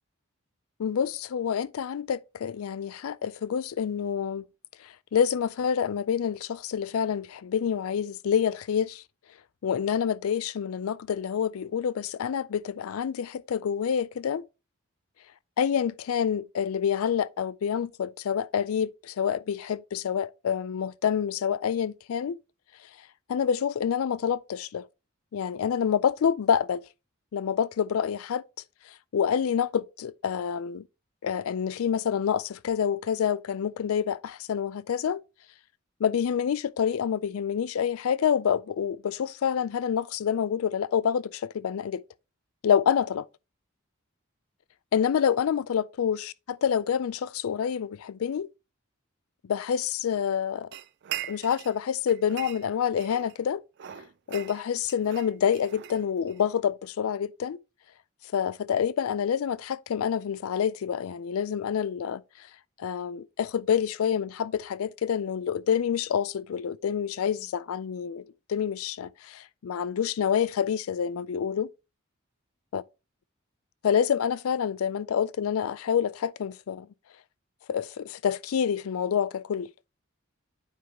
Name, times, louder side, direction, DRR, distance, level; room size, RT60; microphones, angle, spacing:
voice 1, 0.8-4.4 4.8-9.0 9.6-14.5 15.6-22.4 23.3-24.8 25.3-26.8 27.3-28.4 28.9-30.8 31.2-35.2 36.0-42.0 42.6-43.3 44.9-48.5 49.4-50.7 51.3-53.6 54.3-57.6 58.3-62.5 62.8-68.2 68.5-71.7 72.7-72.8 73.8-76.9 77.7-79.7, left 8 dB, 75° left, 0.4 m, -27 dB
sound 1, 50.7-51.8 52.1-53.4 53.8-56.5, right 12 dB, 50° right, 0.4 m, -40 dB
9.3 x 4.7 x 2.9 m
head